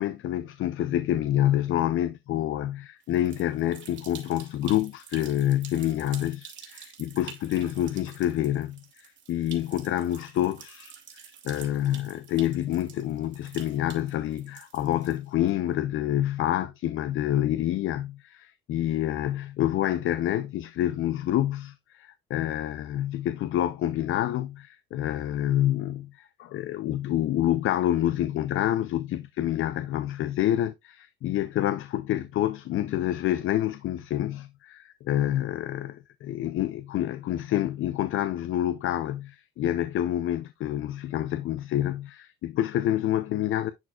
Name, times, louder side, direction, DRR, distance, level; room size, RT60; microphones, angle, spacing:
voice 1, 0.0-43.7, left 12 dB, 75° left, 0.7 m, -27 dB
sound 1, 3.0-15.5, right 8 dB, 60° right, 2.4 m, -48 dB
10.5 x 4.4 x 2.4 m
cardioid pair, 125°, 21 cm